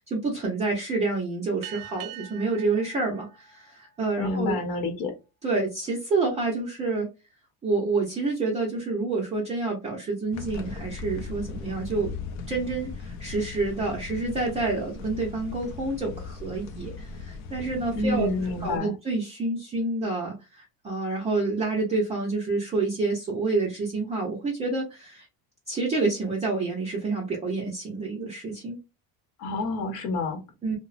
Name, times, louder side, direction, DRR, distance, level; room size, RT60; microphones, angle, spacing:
voice 1, 0.1-4.6 5.4-7.1 7.6-12.1 12.5-18.3 18.6-25.3 25.7-28.8 30.6-30.8, right 3 dB, 15° right, -4 dB, 0.4 m, -28 dB
sound 1, 1.6-4.6, right 12 dB, 60° right, 0.6 m, -44 dB
voice 2, 4.2-5.1 17.9-18.9 29.4-30.4, left 2 dB, 60° left, 5 dB, 0.9 m, -28 dB
sound 2, 10.3-18.8, left 5 dB, 45° left, 0.5 m, -38 dB
2.9 x 2.0 x 2.4 m, 0.27 s
cardioid pair, 165°, 40 cm